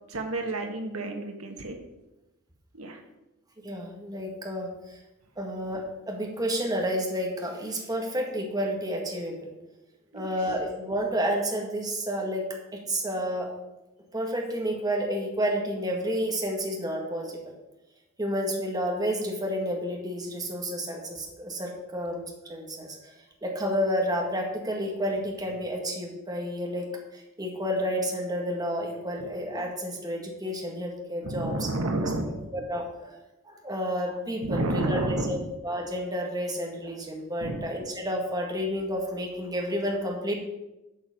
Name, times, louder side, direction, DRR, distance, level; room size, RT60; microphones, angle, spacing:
voice 1, 0.1-1.8 2.7-3.0 10.1-10.3 31.2-32.5 34.4-35.5 37.4-37.7, right 2 dB, 85° right, 4 dB, 1.4 m, -30 dB
voice 2, 3.6-5.0 5.4-9.5 10.1-12.4 12.9-13.5 14.1-17.4 18.2-23.1 23.4-31.7 32.5-33.2 33.4-40.3, equal, 20° right, 0 dB, 1.7 m, -30 dB
11.5 x 6.0 x 5.3 m, 0.98 s
head